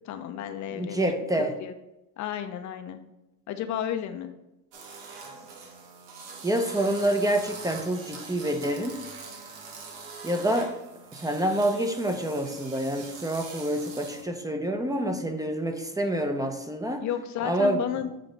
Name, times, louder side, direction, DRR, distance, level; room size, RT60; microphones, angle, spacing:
voice 1, 0.0-1.1 1.4-1.7 2.2-3.0 3.5-4.3 17.0-18.1, left 10 dB, 55° left, 7 dB, 0.7 m, -32 dB
voice 2, 0.7-1.5 6.4-9.0 10.2-10.7 11.1-17.0 17.4-17.8, right 1 dB, 10° right, 6 dB, 0.7 m, -27 dB
sound 1, 4.7-14.3, right 4 dB, 85° right, 1.4 m, -43 dB
7.6 x 2.9 x 5.1 m, 0.91 s
supercardioid pair, 100°, 34 cm